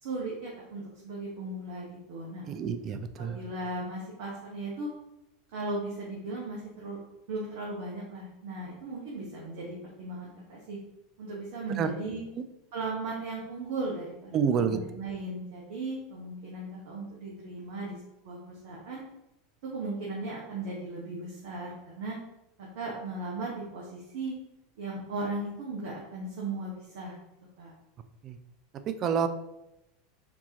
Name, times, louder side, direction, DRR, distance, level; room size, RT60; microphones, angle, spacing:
voice 1, 0.0-2.5 3.2-4.9 5.5-7.0 7.3-10.8 11.2-12.2 12.7-18.0 18.2-19.0 19.7-22.2 22.6-24.4 24.8-27.2 27.6-27.7, right 2 dB, 65° right, -4 dB, 0.9 m, -37 dB
voice 2, 2.4-3.4 11.8-11.9 14.3-14.8 28.2-28.4 28.9-29.3, right 7 dB, 40° right, 9 dB, 0.4 m, -28 dB
4.4 x 2.8 x 2.8 m, 0.91 s
hypercardioid pair, 85°, 0 cm